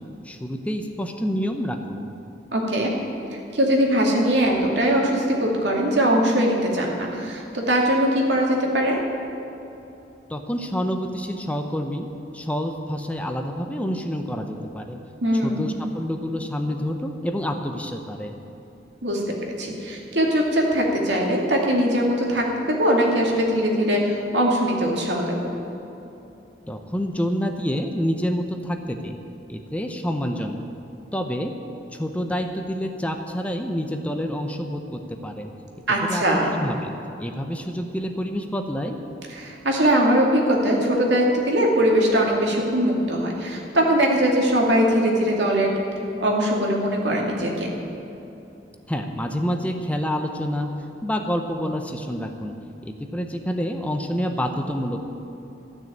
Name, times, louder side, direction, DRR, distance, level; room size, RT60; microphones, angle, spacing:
voice 1, 0.2-2.1 10.3-12.1 12.3-15.0 15.4-18.4 26.7-29.2 29.5-30.7 31.1-31.5 31.9-35.5 36.1-36.2 36.5-39.0 48.9-50.7 51.0-52.5 52.8-55.1, equal, 10° left, 5 dB, 0.6 m, -28 dB
voice 2, 2.5-2.9 3.3-9.0 15.2-15.7 19.0-19.2 19.6-25.5 35.9-36.6 39.3-45.7 46.2-47.7, equal, 80° right, -1 dB, 2.3 m, -21 dB
14.5 x 6.3 x 8.7 m, 2.9 s
head